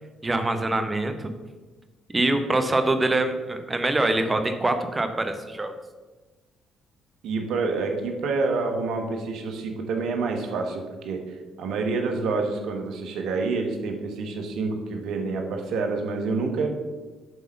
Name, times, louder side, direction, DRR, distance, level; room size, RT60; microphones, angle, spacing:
voice 1, 0.2-1.3 2.1-5.7, right 2 dB, 25° right, 7 dB, 1.1 m, -24 dB
voice 2, 7.2-16.7, right 4 dB, 70° right, 3 dB, 1.2 m, -28 dB
7.8 x 3.6 x 6.6 m, 1.2 s
hypercardioid pair, 55°, 0 cm